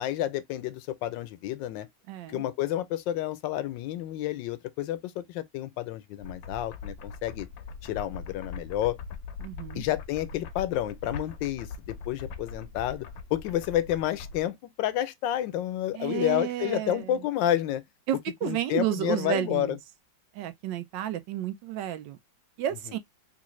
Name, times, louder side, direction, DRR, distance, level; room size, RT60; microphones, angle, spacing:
voice 1, 0.0-1.9 2.3-7.5 7.8-9.0 9.7-17.8 18.4-19.8, left 12 dB, 85° left, 1.3 m, -30 dB
voice 2, 2.1-2.4 9.4-9.8 15.9-17.1 18.1-19.8 20.3-22.2 22.6-23.0, right 12 dB, 85° right, 1.3 m, -31 dB
sound 1, 6.2-14.5, left 5 dB, 65° left, 1.0 m, -41 dB
3.7 x 2.5 x 3.0 m
omnidirectional pair, 2.0 m